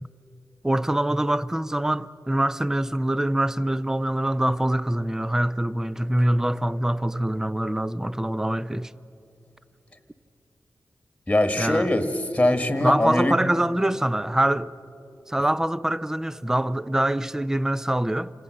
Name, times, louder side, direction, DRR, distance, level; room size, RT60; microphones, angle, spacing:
voice 1, 0.6-8.9 11.6-11.9 12.8-14.7 15.3-18.3, right 1 dB, 5° right, 0.5 m, -24 dB
voice 2, 11.3-13.4, left 1 dB, 15° left, 1.6 m, -22 dB
27.0 x 17.5 x 7.6 m
wide cardioid pair, 85°, 7 cm